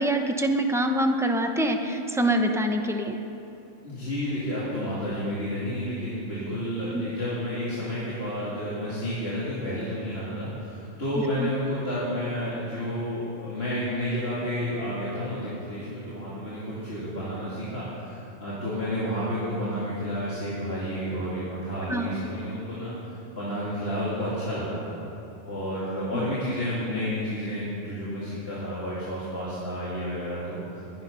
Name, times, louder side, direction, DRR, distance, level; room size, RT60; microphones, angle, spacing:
voice 1, 0.0-3.2 6.9-7.0 11.4-11.5 21.9-22.1 26.1-26.3, right 1 dB, 5° right, 4 dB, 0.6 m, -25 dB
voice 2, 3.8-22.9 23.3-24.8 25.5-31.0, equal, 45° left, -10 dB, 3.0 m, -31 dB
21.5 x 9.4 x 5.6 m, 2.8 s
omnidirectional pair, 1.5 m